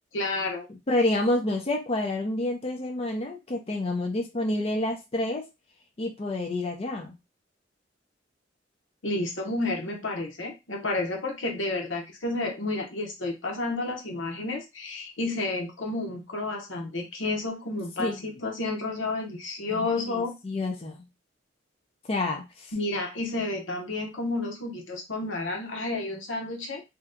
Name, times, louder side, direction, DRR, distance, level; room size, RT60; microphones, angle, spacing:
voice 1, 0.1-0.7 9.0-20.3 22.7-26.8, left 2 dB, 80° left, 1 dB, 0.9 m, -31 dB
voice 2, 0.9-5.5 6.0-7.1 18.0-18.2 19.7-21.0 22.1-22.7, left 1 dB, 30° left, 2 dB, 0.5 m, -28 dB
2.8 x 2.2 x 3.6 m, 0.24 s
head